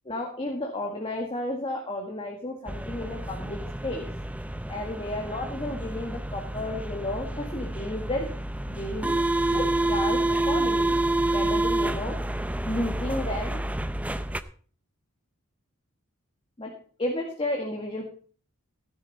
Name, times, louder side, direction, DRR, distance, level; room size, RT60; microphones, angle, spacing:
voice 1, 0.1-4.1 4.7-8.3 8.6-11.0 11.3-12.1 12.6-13.7 16.6-16.7 17.0-18.0, left 1 dB, 25° left, 1 dB, 1.7 m, -32 dB
sound 1, 2.7-14.4, right 2 dB, 5° right, 0.5 m, -28 dB
15.5 x 10.0 x 4.1 m, 0.43 s
head